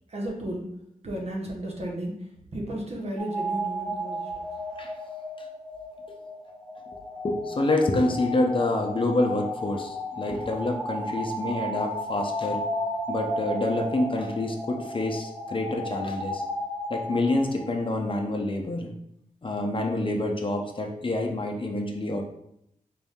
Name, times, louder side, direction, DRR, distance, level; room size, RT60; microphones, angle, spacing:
voice 1, 0.1-0.7 1.0-4.5, right 1 dB, 50° right, -1 dB, 1.0 m, -34 dB
sound 1, 3.2-17.9, equal, ahead, 0.8 m, -34 dB
voice 2, 7.2-12.6 13.1-16.4 16.9-18.9 19.4-22.2, left 2 dB, 40° left, 2 dB, 0.6 m, -27 dB
4.0 x 2.6 x 3.5 m, 0.76 s
cardioid pair, 70°, 14 cm